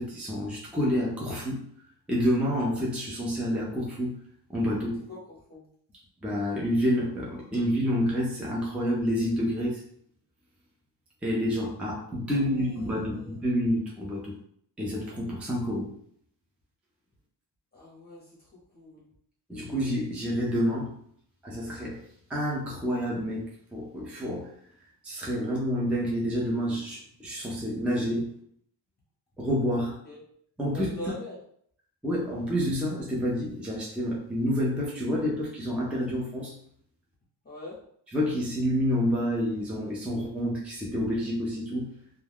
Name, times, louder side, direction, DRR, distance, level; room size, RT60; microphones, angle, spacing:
voice 1, 0.0-1.7 2.1-4.2 4.5-5.0 6.2-9.9 11.2-14.3 14.8-15.9 19.5-21.0 21.4-24.5 25.0-28.4 29.4-30.0 30.6-31.1 32.0-36.6 38.1-42.0, equal, 5° right, -4 dB, 0.5 m, -28 dB
voice 2, 5.1-5.6 12.3-13.4 17.7-19.1 30.0-30.2 30.7-31.4 37.4-37.8, left 1 dB, 20° left, -6 dB, 0.8 m, -43 dB
2.3 x 2.2 x 3.4 m, 0.65 s
wide cardioid pair, 120°, 44 cm